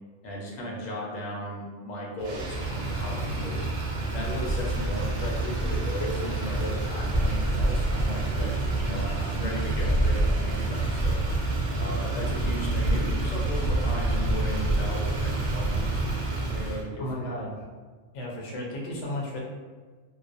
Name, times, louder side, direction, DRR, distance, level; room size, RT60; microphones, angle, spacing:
voice 1, 0.2-3.6 4.1-11.2 11.8-16.0 16.5-17.3, equal, 85° left, -3 dB, 1.0 m, -36 dB
Motor vehicle (road), 2.2-16.8, right 2 dB, 70° right, 0.4 m, -27 dB
voice 2, 17.0-17.7 18.1-19.4, left 1 dB, 60° left, -3 dB, 0.8 m, -34 dB
2.3 x 2.1 x 2.5 m, 1.4 s
omnidirectional pair, 1.3 m